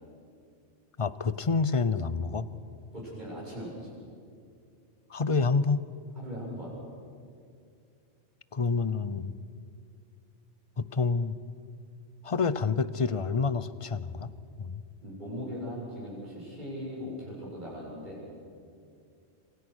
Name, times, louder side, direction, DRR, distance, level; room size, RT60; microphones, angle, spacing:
voice 1, 1.0-2.4 5.1-5.9 8.5-9.3 10.8-11.4 12.2-14.3 14.6-14.8, left 4 dB, 30° left, 15 dB, 0.7 m, -28 dB
voice 2, 2.9-3.9 6.1-6.7 15.0-18.2, equal, 40° right, -6 dB, 7.8 m, -39 dB
27.0 x 27.0 x 6.4 m, 2.4 s
omnidirectional pair, 1.2 m